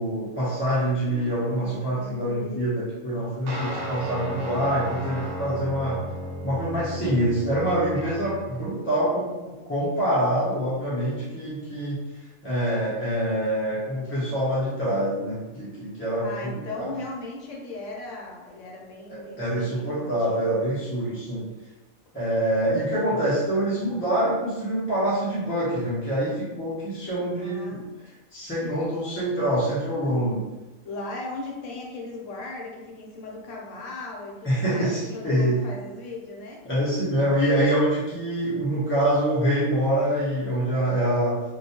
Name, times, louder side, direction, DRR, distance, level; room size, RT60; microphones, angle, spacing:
voice 1, 0.0-6.0 6.4-12.0 12.4-16.9 19.1-21.5 22.1-27.8 28.3-30.4 34.4-35.6 36.6-41.4, right 1 dB, 20° left, -10 dB, 0.3 m, -25 dB
sound 1, 3.5-8.6, equal, 65° right, 0.9 m, -34 dB
voice 2, 16.2-20.4 27.4-27.8 30.2-30.3 30.8-36.6, left 2 dB, 70° left, -2 dB, 0.8 m, -37 dB
2.3 x 2.2 x 2.7 m, 1.1 s
omnidirectional pair, 1.5 m